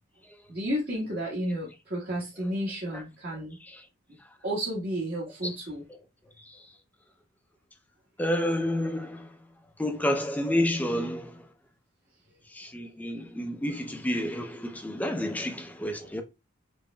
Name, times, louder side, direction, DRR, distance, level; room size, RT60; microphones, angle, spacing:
voice 1, 0.5-3.6 4.4-5.8 16.0-16.1, equal, 45° right, 1.4 m, -32 dB
voice 2, 8.2-9.4 9.8-11.5 12.5-16.2, left 1 dB, 5° left, 0.5 m, -30 dB
6.8 x 3.1 x 2.2 m
head